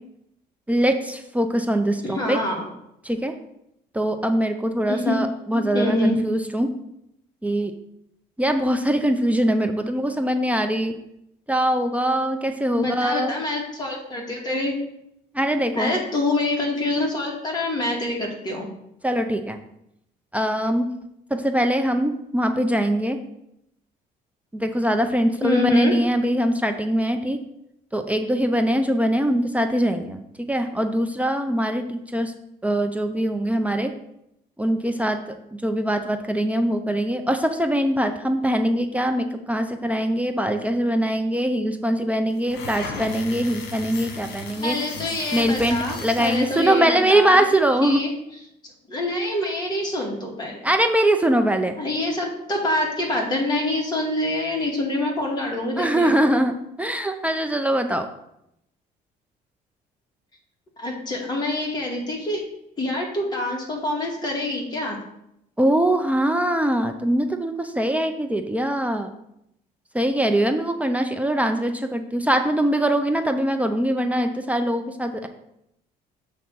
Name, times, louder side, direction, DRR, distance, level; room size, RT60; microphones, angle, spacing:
voice 1, 0.7-2.4 3.0-3.3 3.9-6.7 7.4-7.7 8.4-10.9 11.5-13.3 15.3-15.9 19.0-19.6 20.3-20.9 21.3-23.2 24.5-27.4 27.9-32.3 32.6-33.9 34.6-35.2 35.5-44.8 45.3-48.0 50.6-51.8 55.8-58.1 65.6-69.1 69.9-75.3, right 1 dB, 10° right, 6 dB, 0.5 m, -22 dB
voice 2, 2.0-2.7 4.9-5.2 5.5-6.1 12.8-14.8 15.7-18.7 25.4-25.9 44.6-47.4 47.8-48.1 48.9-50.7 51.8-56.1 60.8-62.4 62.8-65.0, left 2 dB, 25° left, -2 dB, 2.2 m, -26 dB
sound 1, 42.4-46.8, left 3 dB, 75° left, 1.4 m, -36 dB
7.0 x 3.5 x 6.2 m, 0.79 s
cardioid pair, 110°, 17 cm